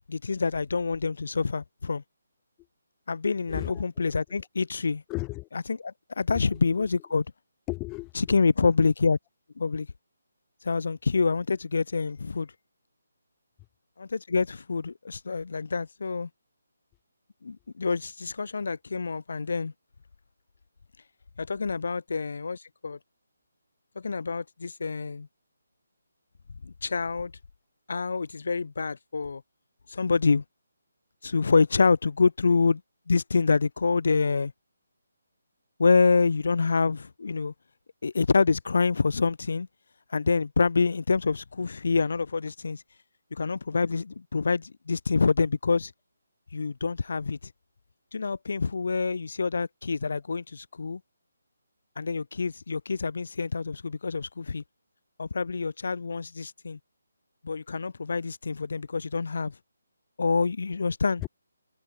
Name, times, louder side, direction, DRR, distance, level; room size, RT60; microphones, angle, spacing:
voice 1, 0.1-2.0 3.1-5.0 5.7-7.2 8.2-9.2 9.6-9.9 10.6-12.5 14.0-16.3 17.4-19.7 21.4-23.0 24.0-25.3 26.6-27.3 27.9-29.4 29.9-30.4 31.2-32.8 33.1-34.5 35.8-37.5 38.0-39.7 40.1-42.8 43.3-45.9 46.5-47.4 48.1-51.0 52.0-54.6 55.2-56.8 57.4-59.6 60.2-61.2, left 4 dB, 65° left, 0.6 m, -26 dB
voice 2, 3.5-4.2 5.1-5.5 6.3-6.5 7.7-8.4 8.6-8.7 61.2-61.3, left 24 dB, 15° left, 0.8 m, -35 dB
figure-of-eight pair, 160°, 0 cm